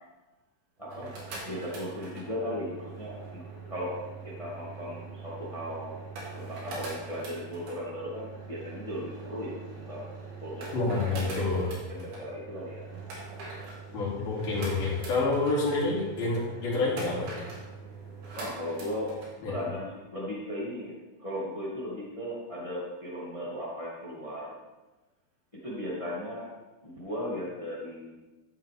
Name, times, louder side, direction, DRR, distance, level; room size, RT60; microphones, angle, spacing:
voice 1, 0.8-1.1 1.4-3.4 3.7-4.0 4.2-6.0 6.3-10.1 10.4-11.4 11.9-12.8 18.4-19.1 19.4-20.9 21.2-24.5 25.6-26.5 26.8-28.1, equal, 15° left, -6 dB, 1.2 m, -37 dB
sound 1, 0.8-19.3, right 4 dB, 70° right, 4.1 m, -43 dB
voice 2, 10.7-11.7 13.9-17.3 19.4-19.6, left 3 dB, 55° left, -5 dB, 4.0 m, -28 dB
13.5 x 7.7 x 3.5 m, 1.1 s
omnidirectional pair, 4.6 m